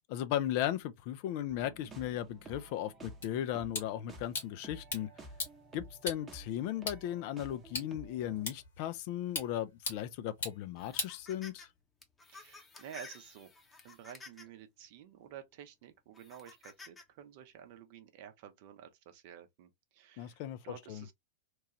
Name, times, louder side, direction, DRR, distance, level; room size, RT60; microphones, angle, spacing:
voice 1, 0.1-5.1 5.7-11.7 20.2-20.6 20.9-21.0, left 11 dB, 45° left, 0.4 m, -36 dB
sound 1, 1.5-8.5, right 1 dB, 20° right, 0.8 m, -52 dB
sound 2, 3.2-11.8, left 3 dB, 65° left, 1.5 m, -43 dB
sound 3, 10.8-11.7 12.0-14.6 15.2-15.3 16.1-17.0, left 3 dB, 15° left, 0.8 m, -53 dB
voice 2, 12.3-13.5 13.8-21.1, right 9 dB, 50° right, 0.6 m, -51 dB
3.0 x 2.3 x 2.9 m
figure-of-eight pair, 90°, 0 cm